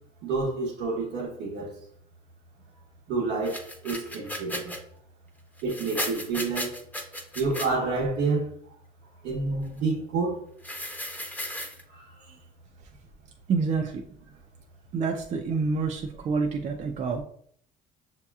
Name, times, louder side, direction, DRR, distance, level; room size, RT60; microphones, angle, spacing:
voice 1, 0.2-1.7 3.1-4.8 5.6-6.8 7.3-8.5 9.2-10.4 11.9-12.1, right 3 dB, 90° right, 1.1 m, -29 dB
sound 1, 3.4-4.8 5.6-7.7 10.6-11.8, left 1 dB, 10° left, 0.7 m, -35 dB
voice 2, 13.5-14.0 14.9-17.2, right 4 dB, 45° right, 0.5 m, -27 dB
6.2 x 2.8 x 2.3 m
cardioid pair, 110°, 17 cm